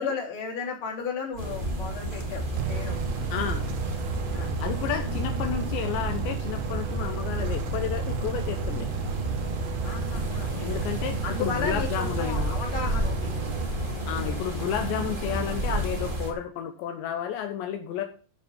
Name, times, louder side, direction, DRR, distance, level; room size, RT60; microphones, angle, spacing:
voice 1, 0.0-3.0 4.3-4.5 9.8-10.8 11.2-13.3, left 5 dB, 30° left, -2 dB, 3.9 m, -34 dB
sound 1, 1.3-11.2, right 3 dB, 55° right, 1.9 m, -40 dB
sound 2, 1.4-16.3, right 1 dB, 35° right, 0.8 m, -31 dB
sound 3, 2.6-14.2, right 9 dB, 80° right, 2.9 m, -34 dB
voice 2, 3.3-3.6 4.6-8.9 10.5-12.6 14.1-18.0, left 9 dB, 75° left, 6 dB, 3.3 m, -32 dB
13.5 x 6.1 x 5.2 m, 0.38 s
omnidirectional pair, 5.3 m